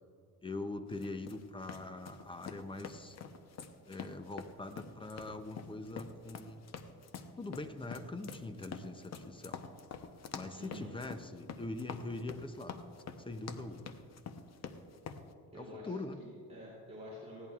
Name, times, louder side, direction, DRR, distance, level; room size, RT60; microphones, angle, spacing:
voice 1, 0.4-3.2 3.9-6.6 7.4-9.6 10.3-12.9 13.3-13.9 15.5-16.2, left 2 dB, 15° left, 9 dB, 0.5 m, -43 dB
sound 1, 0.9-15.2, left 6 dB, 45° left, 0.8 m, -47 dB
voice 2, 10.6-10.9 15.5-17.5, equal, 20° right, -7 dB, 3.2 m, -49 dB
19.5 x 16.0 x 2.4 m, 2.5 s
cardioid pair, 150°, 36 cm